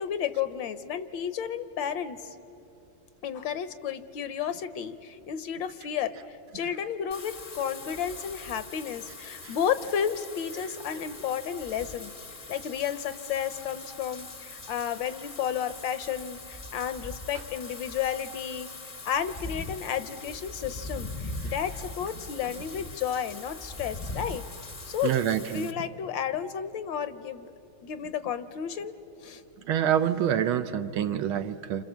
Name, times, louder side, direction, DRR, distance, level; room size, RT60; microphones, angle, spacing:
voice 1, 0.0-2.3 3.2-12.1 12.5-18.7 19.0-24.4 24.9-25.1 25.5-27.5 27.8-28.9 29.2-29.4, left 8 dB, 70° left, 12 dB, 1.4 m, -32 dB
Wind / Rain, 7.1-25.7, left 2 dB, 30° left, 0.6 m, -41 dB
voice 2, 25.0-25.7 29.6-31.8, right 9 dB, 80° right, 10 dB, 1.7 m, -27 dB
29.0 x 27.0 x 7.3 m, 2.8 s
omnidirectional pair, 2.3 m